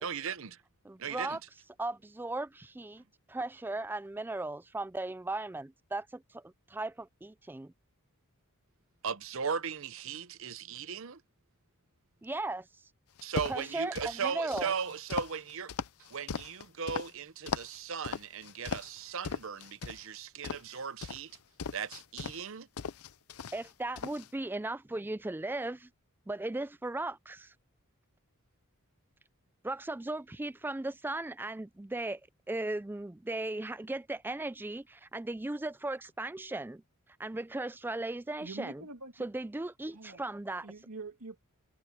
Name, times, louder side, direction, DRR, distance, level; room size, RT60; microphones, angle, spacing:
voice 1, 0.0-0.6 1.0-1.4 9.0-11.2 13.2-15.7 16.0-21.4 21.7-22.7, right 6 dB, 60° right, 0.8 m, -37 dB
voice 2, 0.8-1.4 1.8-3.0 3.3-7.7 12.2-12.7 13.5-14.7 23.5-25.9 26.3-27.5 29.6-32.2 32.5-36.8 37.2-38.8 39.2-40.7, right 2 dB, 10° right, 0.3 m, -37 dB
sound 1, 13.2-14.1 14.5-17.1 17.5-17.8 18.0-19.0 19.2-20.0 20.4-22.4 22.8-23.7 24.0-24.3, left 5 dB, 80° left, 0.6 m, -38 dB
voice 3, 38.4-39.3 39.9-40.3 40.6-41.4, right 3 dB, 85° right, 2.1 m, -45 dB
head